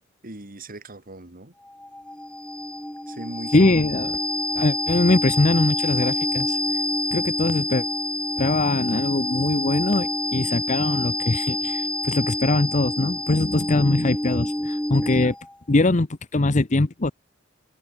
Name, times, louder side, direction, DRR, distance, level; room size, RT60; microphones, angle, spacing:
voice 1, 0.2-1.5 3.1-3.7 15.0-15.3, right 2 dB, 45° right, 2.5 m, -39 dB
sound 1, 1.6-15.5, left 1 dB, 5° left, 0.9 m, -27 dB
voice 2, 3.5-4.2 4.5-6.6 7.1-7.9 8.4-15.3 15.7-16.1 16.3-17.1, left 2 dB, 35° left, 0.9 m, -22 dB
head